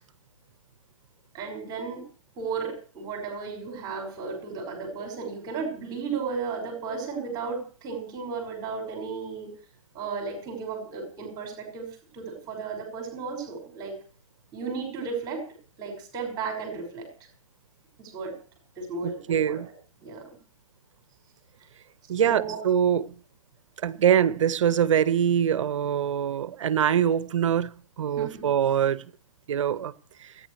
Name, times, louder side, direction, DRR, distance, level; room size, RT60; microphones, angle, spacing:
voice 1, 1.3-2.0 2.4-9.5 9.9-11.8 12.1-14.0 14.5-15.4 15.8-17.1 18.0-18.3 18.8-19.7 20.0-20.2 22.2-22.6 28.2-28.4, right 5 dB, 25° right, 5.9 m, -34 dB
voice 2, 19.0-19.7 22.1-23.1 23.8-29.0 29.5-29.9 30.2-30.3, right 9 dB, 65° right, 1.1 m, -24 dB
29.5 x 10.0 x 3.3 m
hypercardioid pair, 140°, 17 cm